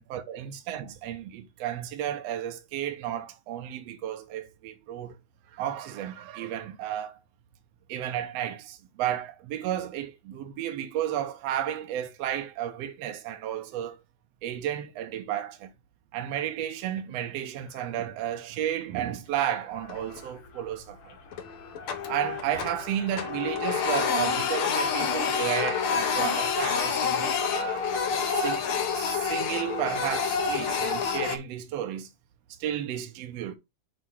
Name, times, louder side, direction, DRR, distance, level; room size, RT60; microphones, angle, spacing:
voice 1, 0.0-5.1 5.5-7.2 7.9-14.0 14.4-15.7 16.1-21.2 22.1-27.9 28.3-28.7 28.9-32.1 32.6-33.6, right 11 dB, 70° right, 1.7 m, -33 dB
sound 1, 16.8-17.0 17.6-17.9 18.4-18.8 19.3-19.4 19.6-29.0, left 4 dB, 85° left, 3.2 m, -43 dB
Printer, 19.8-20.4 20.7-20.9 21.3-22.9 23.1-31.4, left 6 dB, 60° left, 1.5 m, -28 dB
7.5 x 3.0 x 6.0 m
omnidirectional pair, 3.5 m